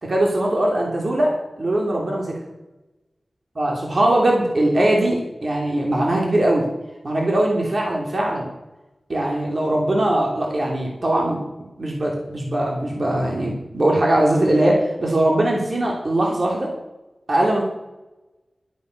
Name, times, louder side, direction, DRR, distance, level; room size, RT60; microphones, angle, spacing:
voice 1, 0.0-2.4 3.6-6.6 7.0-8.5 9.1-16.7 17.3-17.6, right 1 dB, 55° right, -1 dB, 3.2 m, -21 dB
13.0 x 9.0 x 6.6 m, 1.0 s
wide cardioid pair, 75°, 0 cm